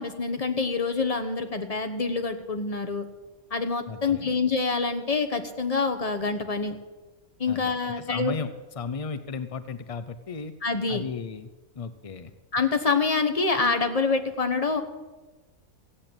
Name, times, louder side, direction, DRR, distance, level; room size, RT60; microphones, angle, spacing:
voice 1, 0.0-3.0 3.5-6.8 7.4-8.4 10.6-11.0 12.5-14.8, left 4 dB, 30° left, 7 dB, 1.2 m, -26 dB
voice 2, 3.9-4.3 7.5-10.5 10.9-11.5 11.7-12.3, left 5 dB, 60° left, 11 dB, 0.3 m, -35 dB
15.5 x 8.4 x 8.8 m, 1.2 s
omnidirectional pair, 1.5 m